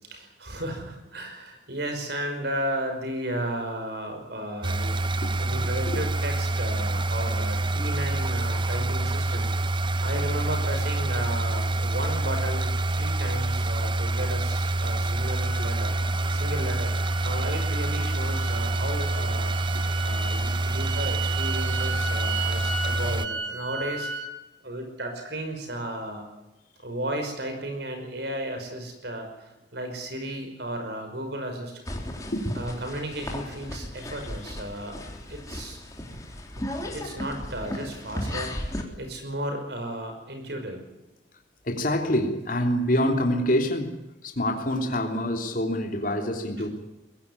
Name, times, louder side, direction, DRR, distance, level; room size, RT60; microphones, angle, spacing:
voice 1, 0.0-9.6 10.0-19.6 20.0-24.1 24.6-26.3 26.8-31.8 32.5-35.0 35.3-35.8 36.6-36.7 36.9-40.8, right 1 dB, 65° right, 5 dB, 5.5 m, -34 dB
sound 1, 4.6-23.3, right 2 dB, 25° right, 0.8 m, -27 dB
sound 2, 15.1-24.3, right 4 dB, 80° right, 3.0 m, -35 dB
sound 3, 31.9-38.8, left 1 dB, 20° left, 3.3 m, -35 dB
voice 2, 41.6-44.0 44.2-46.7, left 1 dB, 50° left, 2 dB, 3.3 m, -26 dB
22.0 x 16.0 x 9.8 m, 1.0 s
head